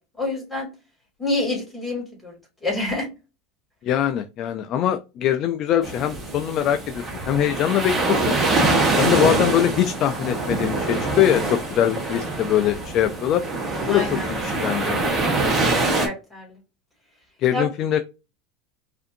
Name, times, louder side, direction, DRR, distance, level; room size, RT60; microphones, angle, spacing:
voice 1, 0.2-0.7 1.2-2.3 2.6-3.1 8.8-9.0 13.9-14.3 16.0-16.5 17.5-17.7, left 2 dB, ahead, -3 dB, 2.3 m, -27 dB
voice 2, 3.8-8.3 9.0-13.4 13.9-14.0 14.3-15.0 17.4-18.0, left 11 dB, 35° left, 8 dB, 0.3 m, -22 dB
sound 1, 5.8-16.1, right 2 dB, 15° right, 1.1 m, -24 dB
5.0 x 2.6 x 2.6 m, 0.28 s
supercardioid pair, 160°, 0 cm